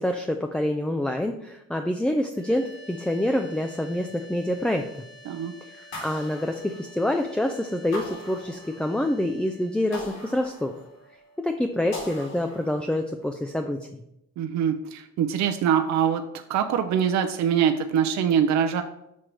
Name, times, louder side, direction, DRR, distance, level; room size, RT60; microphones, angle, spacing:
voice 1, 0.0-4.9 5.7-10.7 11.4-14.0, left 1 dB, 5° left, 4 dB, 0.3 m, -27 dB
sound 1, 2.3-13.4, left 1 dB, 35° left, 1.3 m, -50 dB
sound 2, 5.9-7.3 7.9-9.1 9.9-11.2 11.9-13.1, left 1 dB, 65° left, 2.4 m, -41 dB
voice 2, 14.4-16.2 16.5-18.8, right 8 dB, 65° right, 6 dB, 0.5 m, -23 dB
6.3 x 2.9 x 5.1 m, 0.82 s
cardioid pair, 90°, 30 cm